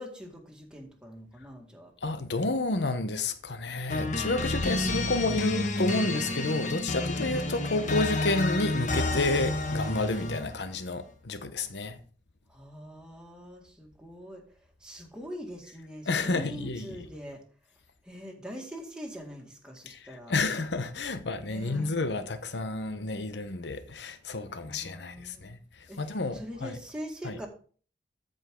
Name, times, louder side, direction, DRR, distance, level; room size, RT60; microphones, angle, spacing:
voice 1, 0.0-1.9 7.2-7.5 12.5-17.4 18.0-20.3 21.4-21.9 24.6-25.5 25.9-27.5, equal, 5° right, 2.1 m, -43 dB
voice 2, 2.0-12.0 16.1-16.9 19.9-26.7 27.2-27.4, left 2 dB, 75° left, 0.9 m, -30 dB
sound 1, 3.9-10.6, left 2 dB, 45° left, 1.3 m, -30 dB
13.5 x 5.3 x 3.8 m
head